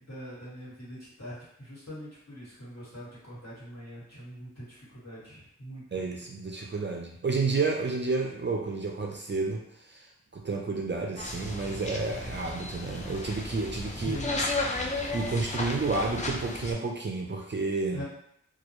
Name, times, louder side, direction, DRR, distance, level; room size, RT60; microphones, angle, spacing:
voice 1, 0.0-5.8 14.0-14.4 17.9-18.0, equal, 60° left, -9 dB, 1.4 m, -42 dB
voice 2, 5.9-14.2 15.1-18.0, right 3 dB, 40° right, 0 dB, 0.4 m, -31 dB
sound 1, 11.2-16.7, left 2 dB, 25° left, 0.4 m, -34 dB
2.2 x 2.0 x 2.9 m, 0.73 s
wide cardioid pair, 55°, 30 cm